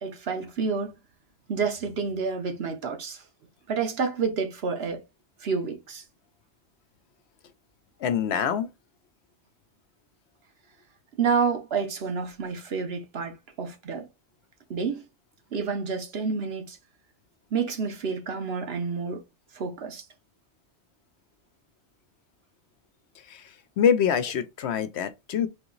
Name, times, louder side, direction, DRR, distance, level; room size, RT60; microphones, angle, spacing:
voice 1, 0.0-1.0 1.5-3.2 3.7-5.0 5.4-6.0 11.2-14.1 14.7-15.0 15.5-16.8 17.5-19.2 19.5-20.0, right 5 dB, 65° right, 1.1 m, -29 dB
voice 2, 8.0-8.7 23.3-23.4 23.8-25.5, left 8 dB, 70° left, 0.9 m, -24 dB
3.9 x 2.9 x 3.9 m
omnidirectional pair, 1.2 m